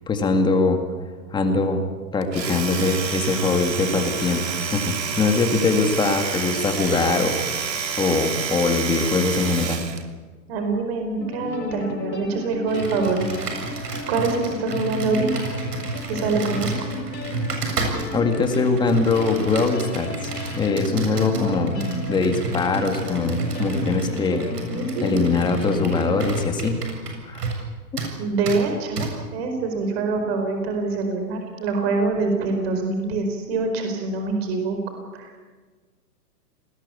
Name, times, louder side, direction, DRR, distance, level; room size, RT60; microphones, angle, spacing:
voice 1, 0.1-0.8 1.3-1.8 2.1-9.8 18.1-21.8 22.1-24.5 25.0-26.8 27.3-27.4, left 3 dB, 10° left, 6 dB, 2.0 m, -22 dB
Domestic sounds home sounds, 2.2-10.1, right 6 dB, 85° right, 3.0 m, -29 dB
voice 2, 10.5-13.3 14.1-15.5 16.1-16.7 21.2-22.1 24.7-25.1 28.2-34.8 35.1-35.3, right 3 dB, 40° right, 4 dB, 4.8 m, -25 dB
sound 1, 11.2-26.3, left 2 dB, 85° left, 4.7 m, -33 dB
Computer keyboard, 12.7-27.7 28.0-28.1 28.5-28.6 29.0-29.1, right 4 dB, 70° right, 7.4 m, -31 dB
27.0 x 20.5 x 8.5 m, 1.4 s
hypercardioid pair, 155°, 49 cm